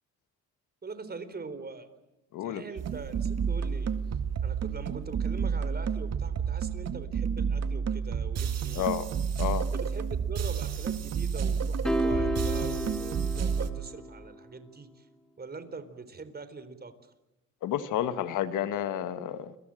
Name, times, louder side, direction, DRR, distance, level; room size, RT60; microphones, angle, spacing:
voice 1, 0.8-1.9 2.4-3.9 4.4-8.9 9.6-15.1 15.4-16.9, right 4 dB, 30° right, 12 dB, 4.0 m, -42 dB
voice 2, 2.3-2.6 8.7-9.1 9.4-9.7 17.6-19.6, left 10 dB, 85° left, 12 dB, 1.6 m, -30 dB
sound 1, 2.8-13.7, right 6 dB, 55° right, 2.0 m, -30 dB
sound 2, 11.8-14.3, equal, ahead, 4.1 m, -31 dB
29.5 x 23.5 x 7.7 m, 0.95 s
cardioid pair, 90°, 30 cm